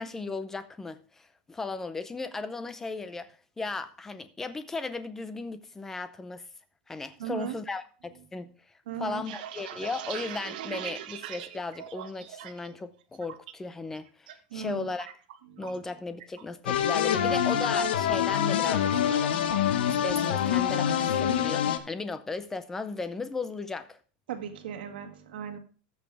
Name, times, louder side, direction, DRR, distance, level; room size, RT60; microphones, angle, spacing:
voice 1, 0.0-6.5 6.9-15.1 15.6-19.4 19.9-24.0, left 3 dB, 5° left, 0.5 m, -36 dB
voice 2, 7.2-7.6 8.9-9.2 14.5-14.9 15.5-15.8 24.3-25.6, right 9 dB, 80° right, 1.7 m, -37 dB
sound 1, 9.0-12.7 13.0-13.5 13.9-14.3 14.6-15.9 16.2-16.4 16.8-17.2, right 11 dB, 60° right, 1.1 m, -41 dB
sound 2, 16.7-21.8, left 9 dB, 85° left, 1.1 m, -25 dB
14.0 x 6.4 x 3.4 m
supercardioid pair, 175°, 5 cm